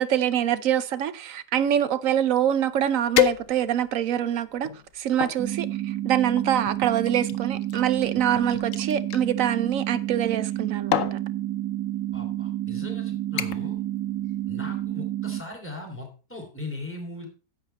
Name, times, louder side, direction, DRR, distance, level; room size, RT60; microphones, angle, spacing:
voice 1, 0.0-11.2, right 10 dB, 65° right, 1.0 m, -25 dB
sound 1, 2.5-2.6 3.1-3.9 4.5-5.4 6.4-9.2 10.3-10.6 10.9-11.2 12.1-12.3 12.7-13.0 13.4-13.8 14.1-14.5 14.8-14.9, left 12 dB, 60° left, 1.0 m, -29 dB
sound 2, 5.4-15.4, right 13 dB, 85° right, 1.7 m, -30 dB
voice 2, 12.1-13.8 14.5-17.3, left 2 dB, 5° left, 3.2 m, -39 dB
11.0 x 7.4 x 4.3 m
omnidirectional pair, 1.6 m